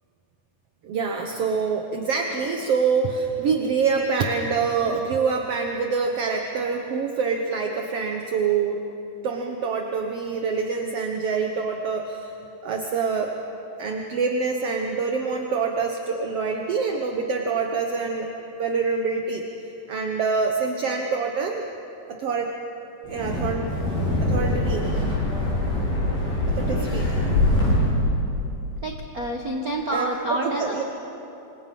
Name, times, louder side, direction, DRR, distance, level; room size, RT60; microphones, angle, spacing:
voice 1, 0.8-8.8 9.2-12.3 12.6-13.3 13.8-18.3 18.6-19.4 19.9-21.6 22.1-22.5 23.1-23.7 24.2-24.9 26.5-27.1 29.9-30.8, right 5 dB, 60° right, 3 dB, 1.6 m, -25 dB
Wind, 23.0-28.1, left 1 dB, 85° left, 9.0 m, -23 dB
voice 2, 28.8-30.6, right 1 dB, 80° right, 0 dB, 0.8 m, -28 dB
28.5 x 25.0 x 5.4 m, 2.9 s
omnidirectional pair, 4.1 m